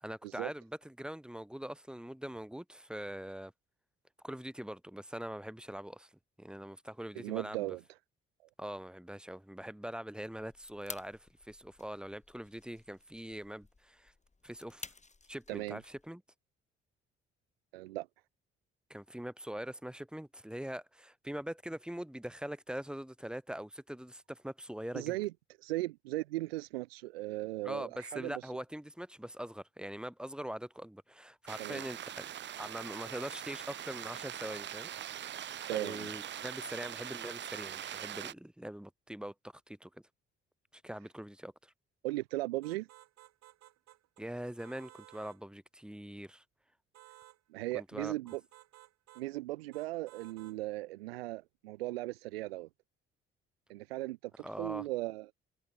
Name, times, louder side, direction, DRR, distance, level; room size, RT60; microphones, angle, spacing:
voice 1, 0.0-3.5 4.2-6.1 6.4-7.8 8.6-14.1 14.4-14.9 15.3-16.2 18.9-25.1 27.6-32.2 32.6-34.9 35.7-39.3 39.7-40.0 40.7-41.7 44.2-46.4 47.7-48.1 54.4-54.8, equal, 5° right, 1.4 m, -43 dB
voice 2, 7.2-7.8 15.5-15.8 17.7-18.1 24.9-25.3 25.6-28.3 31.6-31.8 35.7-36.1 42.0-42.9 47.5-48.4 49.2-52.7 53.7-55.3, right 18 dB, 80° right, 0.7 m, -37 dB
sound 1, 10.3-16.1, left 3 dB, 25° left, 3.1 m, -52 dB
sound 2, 31.5-38.3, right 10 dB, 40° right, 0.5 m, -42 dB
sound 3, 42.6-44.2 44.6-45.4 46.9-47.4 48.3-49.3 49.7-50.6, right 14 dB, 65° right, 1.7 m, -57 dB
figure-of-eight pair, 40°, 30 cm